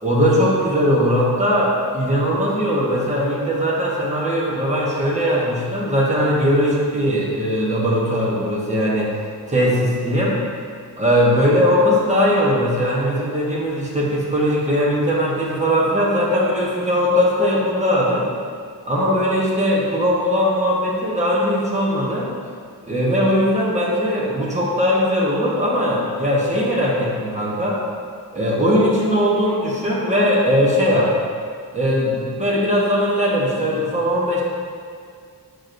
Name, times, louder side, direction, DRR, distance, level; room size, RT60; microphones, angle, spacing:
voice 1, 0.0-9.1 9.5-10.4 11.0-18.3 18.9-22.3 22.9-27.8 28.3-31.1 31.7-34.4, equal, 20° right, -5 dB, 1.1 m, -19 dB
6.6 x 6.2 x 2.6 m, 2.1 s
wide cardioid pair, 155°, 39 cm